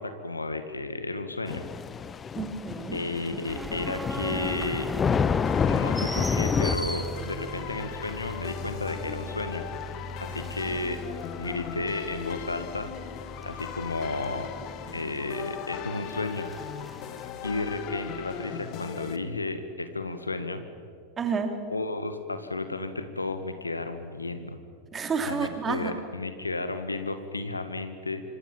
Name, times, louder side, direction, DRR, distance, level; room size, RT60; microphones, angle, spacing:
voice 1, 0.0-1.7 2.9-4.9 5.7-9.7 10.2-11.0 11.4-12.9 13.4-14.5 14.9-16.5 17.4-20.6 21.7-24.6 25.3-28.2, left 2 dB, 80° left, 9 dB, 2.0 m, -33 dB
Thunder / Rain, 1.5-6.8, left 7 dB, 20° left, 0.7 m, -28 dB
voice 2, 2.3-3.0 21.2-21.6 24.9-25.9, right 5 dB, 20° right, 6 dB, 3.3 m, -30 dB
sound 1, 3.5-17.3, equal, ahead, 1.5 m, -38 dB
sound 2, 5.4-19.2, left 9 dB, 40° left, 1.7 m, -39 dB
26.5 x 25.5 x 7.4 m, 2.2 s
figure-of-eight pair, 90°, 0 cm